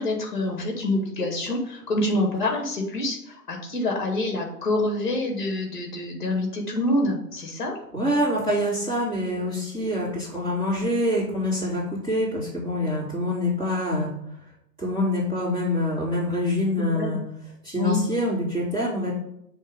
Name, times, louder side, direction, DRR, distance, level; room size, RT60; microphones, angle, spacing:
voice 1, 0.0-7.7 16.8-17.2 17.8-18.0, left 1 dB, 30° left, 2 dB, 1.8 m, -26 dB
voice 2, 7.9-14.1 14.8-17.2 17.6-19.1, left 1 dB, 10° right, -12 dB, 3.2 m, -25 dB
8.1 x 3.6 x 5.5 m, 0.76 s
hypercardioid pair, 170°, 49 cm